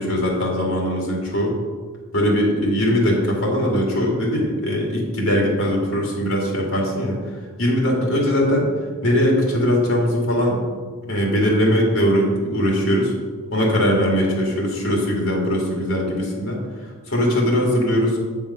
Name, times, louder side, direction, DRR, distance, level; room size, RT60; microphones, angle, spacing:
voice 1, 0.0-1.6 2.1-7.2 7.6-8.7 9.0-10.6 11.1-13.1 13.5-16.6 17.1-18.2, equal, 80° left, -1 dB, 2.3 m, -20 dB
8.8 x 5.6 x 5.6 m, 1.5 s
head